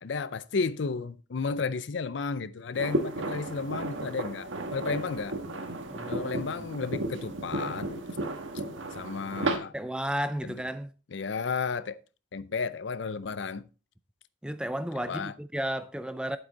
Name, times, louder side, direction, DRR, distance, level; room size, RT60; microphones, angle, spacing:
voice 1, 0.0-5.4 6.1-7.9 8.9-9.7 10.4-10.5 11.1-12.0 12.3-13.7 15.0-15.3, left 4 dB, 70° left, 0.5 m, -33 dB
sound 1, 2.7-9.6, right 2 dB, 85° right, 1.3 m, -34 dB
voice 2, 5.9-6.7 9.7-10.9 14.4-16.4, right 1 dB, 5° right, 0.4 m, -33 dB
9.0 x 7.9 x 4.0 m
head